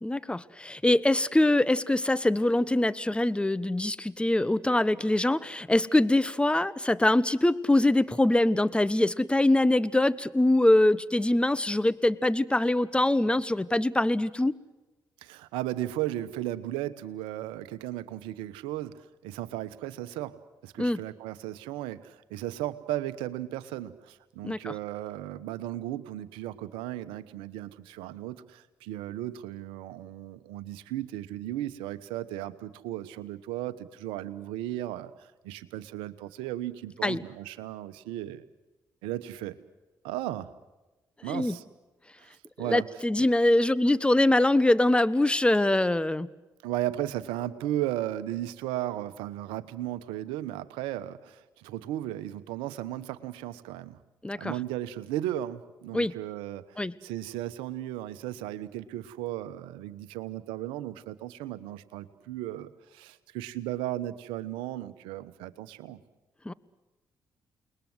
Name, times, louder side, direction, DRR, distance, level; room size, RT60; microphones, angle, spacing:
voice 1, 0.0-14.5 20.8-21.0 24.4-24.7 37.0-37.2 41.3-41.6 42.7-46.3 54.2-54.5 55.9-56.1 56.8-56.9 66.4-66.5, left 1 dB, 10° left, 17 dB, 1.1 m, -23 dB
voice 2, 15.2-20.4 20.6-38.4 39.0-39.6 40.0-40.5 41.2-41.6 42.2-42.8 43.2-43.3 46.6-54.0 54.4-66.0, right 13 dB, 85° right, 15 dB, 1.1 m, -35 dB
29.0 x 20.5 x 8.0 m, 1.1 s
hypercardioid pair, 50°, 9 cm